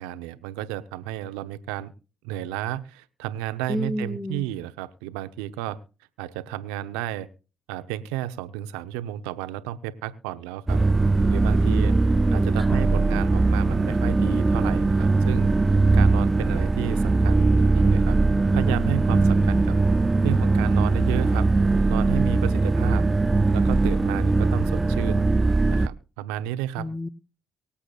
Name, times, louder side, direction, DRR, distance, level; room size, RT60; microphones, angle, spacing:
voice 1, 0.0-1.9 2.2-5.8 6.2-7.3 7.7-10.8 11.3-12.0 12.3-15.5 15.9-18.2 18.5-19.8 20.2-21.5 21.9-23.0 23.5-25.3 25.7-26.9, right 13 dB, 85° right, 12 dB, 0.8 m, -32 dB
voice 2, 3.7-4.4 11.5-12.8 19.1-19.8 26.8-27.1, equal, 10° left, 16 dB, 0.9 m, -31 dB
sound 1, 10.7-25.9, right 3 dB, 25° right, 0.5 m, -20 dB
24.0 x 8.4 x 2.4 m, 0.34 s
hypercardioid pair, 50°, 0 cm